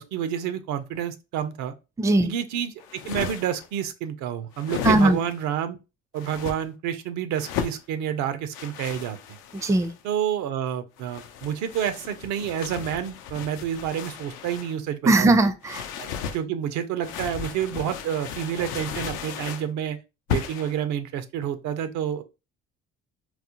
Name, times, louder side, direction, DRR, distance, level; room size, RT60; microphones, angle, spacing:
voice 1, 0.0-1.7 2.2-5.8 6.1-9.4 10.0-15.3 16.0-20.0 20.3-22.2, right 9 dB, 75° right, 0.6 m, -29 dB
voice 2, 2.0-2.3 4.8-5.2 9.6-9.9 15.0-15.8, right 2 dB, 10° right, 0.4 m, -19 dB
sound 1, 2.8-3.7 4.5-5.4 6.2-6.6 7.3-7.8 8.5-10.0 11.0-14.8 15.6-16.4 17.0-19.7 20.3-20.8, left 8 dB, 80° left, 0.5 m, -35 dB
4.0 x 2.0 x 2.8 m
supercardioid pair, 75°, 30 cm